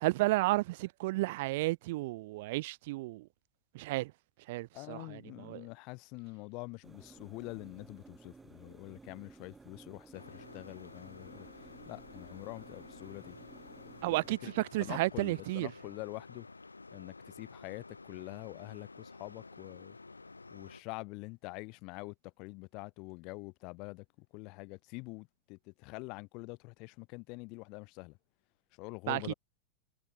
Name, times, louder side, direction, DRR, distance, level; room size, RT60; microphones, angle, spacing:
voice 1, 0.0-3.3 3.7-4.1 4.5-5.6 14.0-15.7 29.1-29.2, right 20 dB, 50° right, 0.6 m, -32 dB
voice 2, 4.7-13.4 14.1-14.5 14.8-16.5 16.9-20.0 20.5-28.2 28.7-29.3, left 27 dB, 40° left, 0.9 m, -45 dB
sound 1, 6.8-14.3, right 4 dB, 10° right, 4.4 m, -56 dB
sound 2, 10.1-20.8, left 3 dB, 80° left, 3.7 m, -52 dB
figure-of-eight pair, 90°, 0 cm